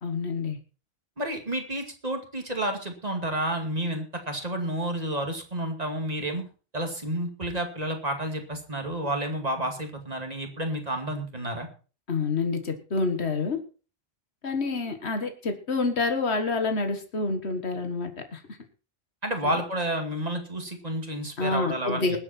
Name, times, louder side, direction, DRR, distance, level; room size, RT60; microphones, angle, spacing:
voice 1, 0.0-0.6 12.1-13.6 14.4-18.4 19.4-19.5 21.4-22.2, left 3 dB, 85° left, 6 dB, 1.9 m, -28 dB
voice 2, 1.2-6.4 6.7-11.7 19.2-22.2, right 1 dB, 40° right, 4 dB, 2.5 m, -30 dB
20.5 x 8.1 x 4.4 m, 0.36 s
omnidirectional pair, 1.1 m